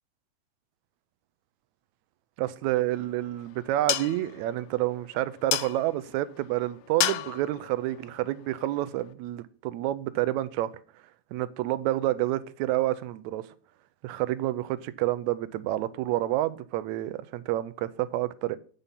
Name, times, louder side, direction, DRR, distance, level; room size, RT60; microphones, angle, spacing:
voice 1, 2.4-10.7 11.3-13.4 14.0-18.6, right 15 dB, 80° right, 1.8 m, -29 dB
sound 1, 2.7-9.1, left 13 dB, 90° left, 1.5 m, -35 dB
8.3 x 5.7 x 5.2 m
omnidirectional pair, 3.5 m